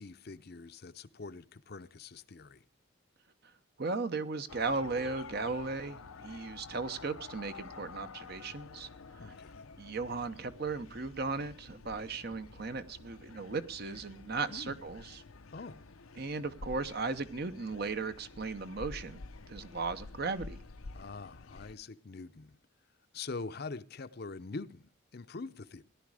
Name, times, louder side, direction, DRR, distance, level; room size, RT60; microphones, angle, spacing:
voice 1, 0.0-2.6 9.2-9.7 14.5-14.8 15.5-15.8 20.9-22.6 23.1-25.8, left 3 dB, 50° left, 0.6 m, -44 dB
voice 2, 3.8-8.9 9.8-15.2 16.2-19.2 19.5-20.6, right 4 dB, 50° right, 0.8 m, -36 dB
sound 1, 4.5-21.8, left 4 dB, 90° left, 0.8 m, -50 dB
17.5 x 10.5 x 4.8 m
head